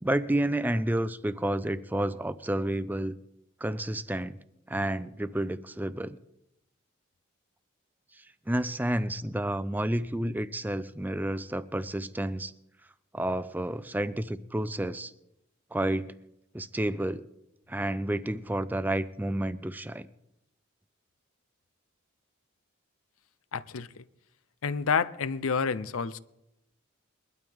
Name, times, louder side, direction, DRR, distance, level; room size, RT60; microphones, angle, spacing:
voice 1, 0.0-3.2 3.6-4.4 4.7-6.2 8.5-12.5 13.1-15.1 15.7-16.1 16.5-17.2 17.7-20.1, right 1 dB, 10° right, 0.4 m, -30 dB
voice 2, 23.5-24.0 24.6-26.2, left 5 dB, 90° left, 0.6 m, -29 dB
21.5 x 12.0 x 3.6 m
head